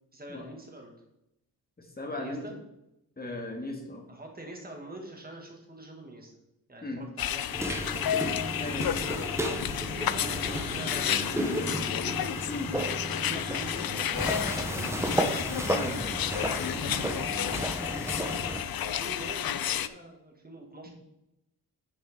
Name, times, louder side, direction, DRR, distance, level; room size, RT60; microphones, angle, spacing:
voice 1, 0.1-0.9 2.2-2.6 4.1-6.4 6.7-8.2 10.0-11.9 13.0-17.4 17.7-18.3 18.7-20.9, right 1 dB, 25° right, 1 dB, 2.0 m, -46 dB
voice 2, 1.8-2.4 3.2-4.0 6.8-7.0 8.6-9.1 12.5-12.7 15.7-15.9 20.9-21.0, left 2 dB, 25° left, 1 dB, 2.0 m, -37 dB
sound 1, 7.2-19.9, left 10 dB, 65° left, 0.5 m, -31 dB
sound 2, 7.5-18.6, right 1 dB, 5° right, 0.8 m, -33 dB
sound 3, 8.2-17.7, right 5 dB, 85° right, 0.8 m, -45 dB
10.0 x 6.9 x 3.7 m, 0.85 s
wide cardioid pair, 140°, 38 cm